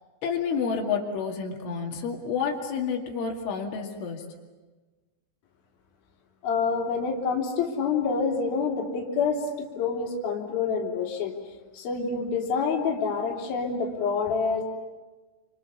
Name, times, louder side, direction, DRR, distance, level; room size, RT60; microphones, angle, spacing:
voice 1, 0.2-4.2, left 6 dB, 85° left, 0 dB, 4.9 m, -29 dB
voice 2, 6.4-11.3 11.7-14.6, left 5 dB, 55° left, -1 dB, 4.6 m, -27 dB
29.5 x 26.5 x 7.2 m, 1.2 s
omnidirectional pair, 5.4 m